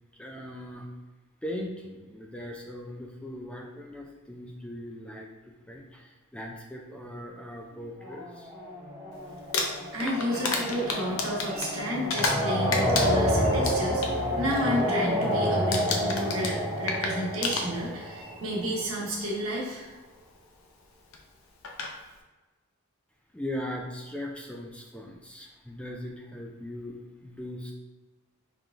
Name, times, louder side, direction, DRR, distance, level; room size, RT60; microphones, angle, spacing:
voice 1, 0.1-0.9 1.4-8.5 23.3-27.0 27.2-27.7, left 1 dB, 5° left, 0 dB, 0.3 m, -39 dB
sound 1, 8.0-18.9, equal, 15° right, 0.7 m, -29 dB
Crumpling crinkling, 9.4-12.5 12.7-14.1 14.5-14.8 15.1-15.4 15.7-18.1 19.0-19.1 21.1-21.2 21.6-21.9, left 3 dB, 70° left, 0.6 m, -31 dB
voice 2, 9.9-19.9, equal, 75° right, -3 dB, 1.2 m, -31 dB
4.6 x 3.7 x 2.5 m, 1.2 s
head